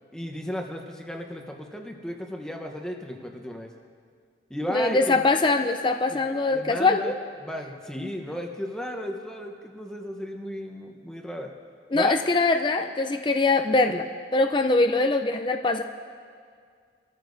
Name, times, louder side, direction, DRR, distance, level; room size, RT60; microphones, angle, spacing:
voice 1, 0.1-3.7 4.5-5.3 6.1-6.2 6.5-7.1 7.4-11.5 11.9-12.2, equal, 5° left, 2 dB, 0.9 m, -34 dB
voice 2, 4.7-7.1 11.9-14.0 14.3-15.8, left 3 dB, 25° left, 6 dB, 0.5 m, -22 dB
24.5 x 14.0 x 2.7 m, 2.1 s
head